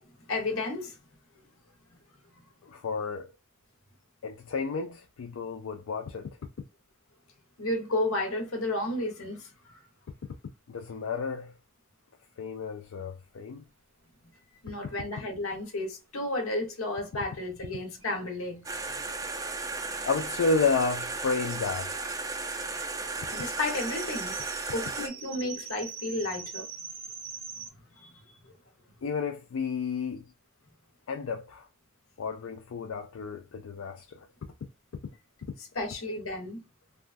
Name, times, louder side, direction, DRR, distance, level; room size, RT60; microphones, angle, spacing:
voice 1, 0.2-1.0 7.6-9.8 14.6-18.7 23.3-24.3 24.7-26.7 28.0-28.1 28.4-28.5 35.6-36.6, left 2 dB, 90° left, 1.0 m, -32 dB
voice 2, 2.7-3.3 4.2-6.4 10.7-11.5 12.4-13.6 20.0-22.1 29.0-30.2 31.1-31.7 32.2-34.2, left 4 dB, 70° left, 0.4 m, -31 dB
sound 1, 18.0-18.1 18.3-18.4 18.7-27.7, right 6 dB, 65° right, 0.7 m, -44 dB
sound 2, 18.7-25.1, right 3 dB, 15° right, 0.4 m, -35 dB
3.2 x 2.3 x 2.5 m
head